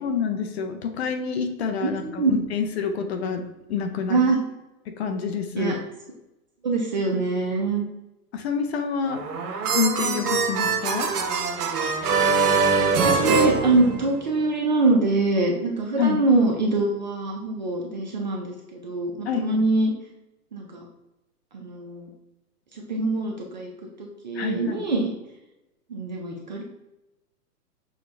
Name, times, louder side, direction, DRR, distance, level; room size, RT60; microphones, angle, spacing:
voice 1, 0.0-3.4 3.7-4.2 4.9-5.8 8.3-9.2 9.6-11.1 16.0-16.2 19.3-19.7 24.3-24.9, left 6 dB, 45° left, 6 dB, 0.6 m, -27 dB
voice 2, 1.8-2.3 4.1-4.4 5.6-5.8 6.6-7.9 13.0-19.9 20.5-20.8 21.5-22.1 22.7-23.7 24.0-25.1 25.9-26.6, right 3 dB, 30° right, 0 dB, 0.4 m, -24 dB
sound 1, 9.1-14.4, right 4 dB, 70° right, 0.9 m, -23 dB
6.2 x 2.2 x 3.2 m, 0.93 s
hypercardioid pair, 140°, 48 cm